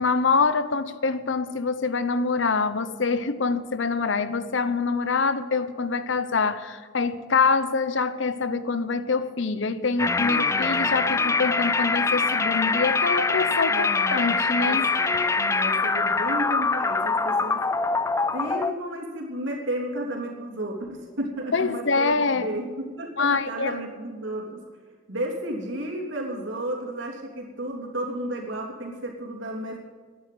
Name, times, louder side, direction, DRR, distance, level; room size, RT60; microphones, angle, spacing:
voice 1, 0.0-14.9 21.5-22.5 23.2-23.8, left 4 dB, 65° left, 0.9 m, -25 dB
sound 1, 10.0-18.7, left 4 dB, 15° left, 0.4 m, -24 dB
voice 2, 13.7-17.6 18.3-24.6 25.1-29.8, right 1 dB, 70° right, 3.3 m, -33 dB
12.5 x 10.0 x 9.2 m
head